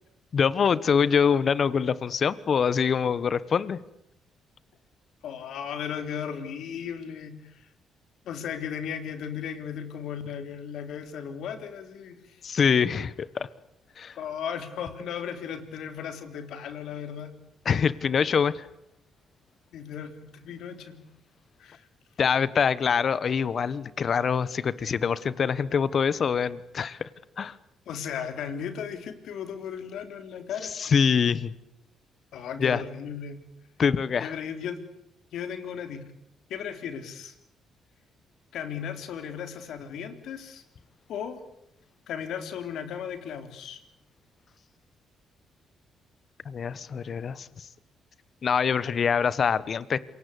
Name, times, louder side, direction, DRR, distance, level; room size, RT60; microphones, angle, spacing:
voice 1, 0.3-3.8 12.4-13.5 14.0-14.1 17.6-18.6 22.2-27.1 27.4-27.6 30.8-31.5 32.6-32.8 33.8-34.3 46.4-47.5 48.4-50.0, left 6 dB, 50° left, 18 dB, 1.2 m, -24 dB
voice 2, 5.2-7.7 8.3-12.4 14.2-17.3 19.7-21.0 21.6-21.9 27.9-30.7 32.3-33.4 34.2-34.8 35.3-36.0 36.5-37.4 38.5-40.6 41.1-41.4 42.1-43.8, left 8 dB, 75° left, 9 dB, 3.6 m, -36 dB
27.0 x 23.5 x 8.4 m, 0.79 s
cardioid pair, 90°, 0 cm